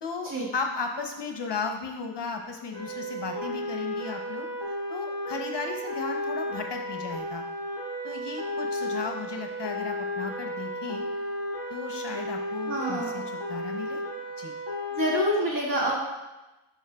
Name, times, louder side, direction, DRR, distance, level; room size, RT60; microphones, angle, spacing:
voice 1, 0.0-7.4 8.0-11.0 11.7-13.2 13.5-14.0 14.4-14.5, left 4 dB, 60° left, 3 dB, 0.8 m, -35 dB
sound 1, 2.7-15.2, equal, 65° right, 2.3 m, -33 dB
voice 2, 12.7-13.3 14.9-15.9, equal, 40° right, -4 dB, 1.9 m, -27 dB
9.9 x 5.0 x 2.2 m, 1.1 s
wide cardioid pair, 110°, 49 cm